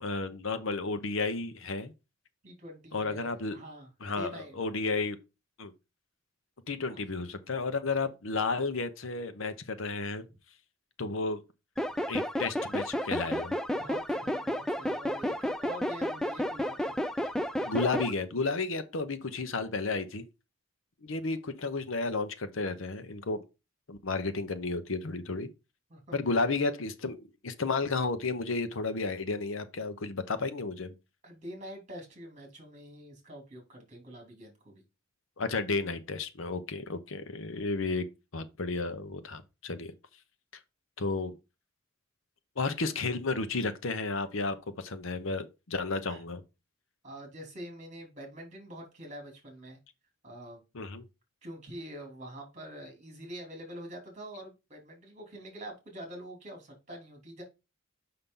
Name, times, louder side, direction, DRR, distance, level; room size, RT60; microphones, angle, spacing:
voice 1, 0.0-1.9 2.9-3.6 4.0-5.2 5.6-5.7 6.7-10.2 11.0-11.4 12.1-13.6 17.6-20.2 21.0-23.4 23.9-25.5 26.1-30.9 35.4-38.1 38.3-39.9 41.0-41.3 42.6-46.4 50.7-51.0, left 3 dB, 65° left, 0.8 m, -32 dB
voice 2, 2.4-4.6 6.9-7.0 13.7-16.9 25.9-26.4 31.2-34.8 46.1-46.2 47.0-49.8 50.2-50.6 51.4-57.4, right 1 dB, 35° right, 2.9 m, -45 dB
sound 1, 11.8-18.1, equal, 5° left, 0.4 m, -32 dB
6.8 x 5.7 x 3.8 m
head